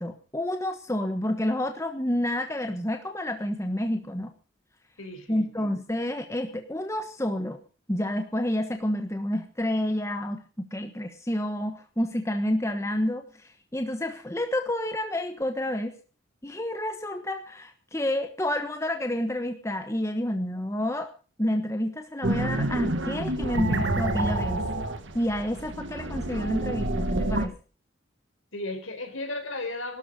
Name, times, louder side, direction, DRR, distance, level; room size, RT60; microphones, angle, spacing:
voice 1, 0.0-4.3 5.3-7.6 7.9-15.9 16.4-21.1 21.4-24.7 25.1-27.6, left 1 dB, 15° left, 6 dB, 1.2 m, -29 dB
voice 2, 5.0-5.7 28.5-30.0, left 2 dB, 80° left, 6 dB, 4.4 m, -35 dB
sound 1, 22.2-27.5, right 1 dB, 65° right, 1.9 m, -28 dB
17.5 x 12.5 x 5.3 m, 0.38 s
head